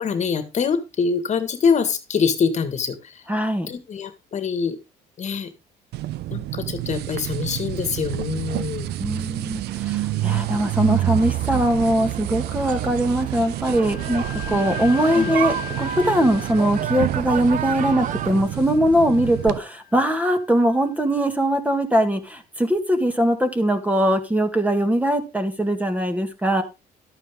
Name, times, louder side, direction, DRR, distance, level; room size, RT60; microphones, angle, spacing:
voice 1, 0.0-3.2 3.7-4.8 5.2-5.5 6.3-8.9 10.1-10.5 14.5-14.6 15.1-15.3, left 6 dB, 45° left, 10 dB, 1.8 m, -25 dB
voice 2, 3.3-3.7 9.0-26.6, equal, 10° right, 7 dB, 1.8 m, -21 dB
sound 1, 5.9-19.6, right 15 dB, 75° right, 0.6 m, -28 dB
sound 2, 10.2-18.4, right 8 dB, 50° right, 0.9 m, -33 dB
Wind instrument woodwind instrument, 13.7-21.1, left 10 dB, 60° left, 1.6 m, -39 dB
12.0 x 8.9 x 3.7 m, 0.26 s
cardioid pair, 110°, 17 cm